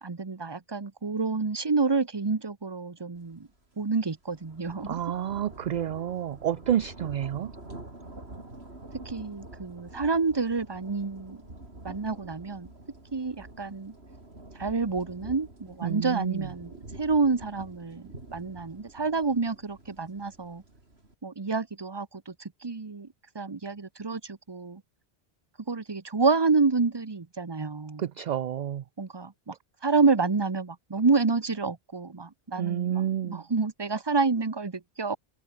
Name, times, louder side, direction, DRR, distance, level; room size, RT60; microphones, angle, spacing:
voice 1, 0.0-3.5 3.8-5.0 9.0-11.4 11.8-12.7 13.1-13.9 14.5-20.6 21.2-23.1 23.3-24.8 25.7-28.0 29.0-29.6 29.8-35.2, right 4 dB, 25° right, 1.0 m, -28 dB
sound 1, 3.3-3.5 3.9-21.1, right 2 dB, 85° right, 5.0 m, -47 dB
voice 2, 4.8-7.5 15.8-16.5 28.0-28.8 32.6-33.4, right 10 dB, 55° right, 0.6 m, -29 dB
omnidirectional pair, 1.0 m